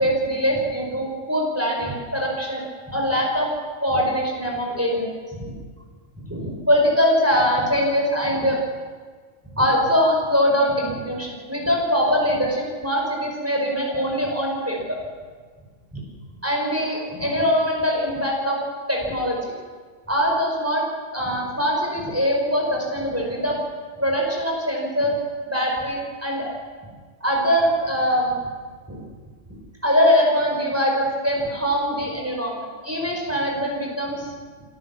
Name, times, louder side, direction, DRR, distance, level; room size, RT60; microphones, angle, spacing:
voice 1, 0.0-3.5 3.8-5.1 5.4-5.5 6.2-8.6 9.5-15.0 15.9-16.0 16.4-18.6 18.9-19.5 20.1-20.8 21.1-23.6 24.0-25.2 25.5-26.5 27.2-28.3 28.9-29.0 29.8-34.3, equal, 10° right, -1 dB, 5.2 m, -22 dB
26.5 x 15.5 x 7.2 m, 1.5 s
omnidirectional pair, 1.3 m